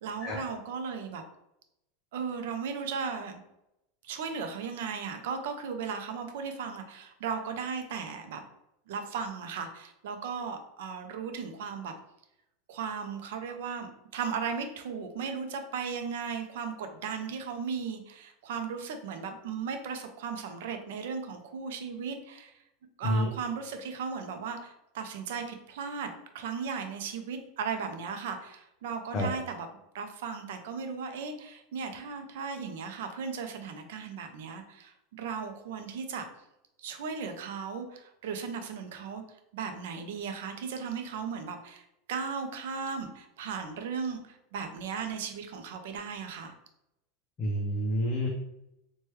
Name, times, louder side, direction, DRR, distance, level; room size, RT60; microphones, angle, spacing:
voice 1, 0.0-1.2 2.1-3.4 4.0-8.4 8.9-11.9 12.7-22.5 23.0-29.7 29.9-36.3 36.8-39.2 39.5-46.5, right 6 dB, 70° right, 6 dB, 0.5 m, -36 dB
voice 2, 47.4-48.3, equal, 20° left, -1 dB, 0.4 m, -28 dB
3.1 x 2.2 x 3.0 m, 0.84 s
supercardioid pair, 175°, 0 cm